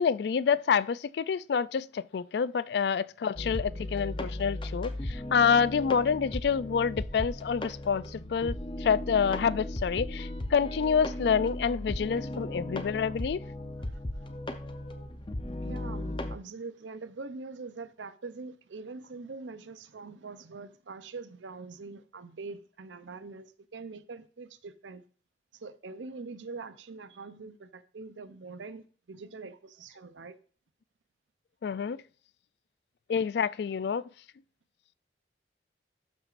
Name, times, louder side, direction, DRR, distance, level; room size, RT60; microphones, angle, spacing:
voice 1, 0.0-8.5 8.8-13.4 31.6-32.0 33.1-34.0, left 6 dB, 65° left, 0.3 m, -27 dB
sound 1, 3.3-16.4, left 1 dB, 25° left, 0.6 m, -36 dB
voice 2, 13.8-14.3 15.6-25.0 25.5-30.4, right 4 dB, 90° right, 0.6 m, -44 dB
12.5 x 5.9 x 2.5 m
head